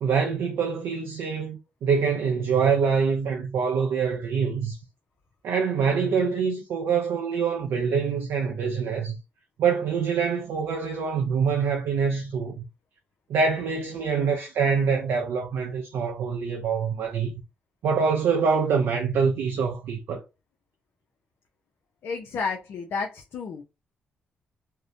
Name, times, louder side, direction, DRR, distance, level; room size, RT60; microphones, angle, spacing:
voice 1, 0.0-4.8 5.4-9.2 9.6-12.6 13.3-17.3 17.8-20.2, right 6 dB, 75° right, 0.4 m, -25 dB
voice 2, 22.0-23.6, left 5 dB, 70° left, 0.4 m, -31 dB
2.6 x 2.1 x 2.5 m
supercardioid pair, 60°, 4 cm